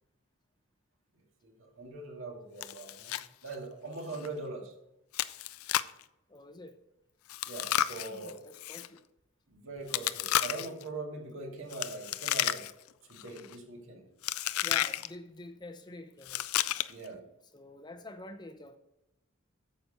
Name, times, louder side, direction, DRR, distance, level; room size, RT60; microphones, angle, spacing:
voice 1, 1.4-4.7 7.4-8.4 9.5-12.7 13.1-14.1 16.9-17.2, right 3 dB, 65° right, 2.1 m, -42 dB
Chewing mastication, 2.6-3.3 3.5-3.6 4.1-4.3 5.1-6.0 7.3-8.9 9.9-10.8 11.7-12.9 13.2-13.5 14.2-15.1 16.2-17.1, left 12 dB, 85° left, 0.4 m, -32 dB
voice 2, 6.3-6.8 8.1-9.0 14.6-16.5 17.5-18.8, left 2 dB, 20° left, 0.7 m, -47 dB
9.1 x 6.8 x 5.5 m
head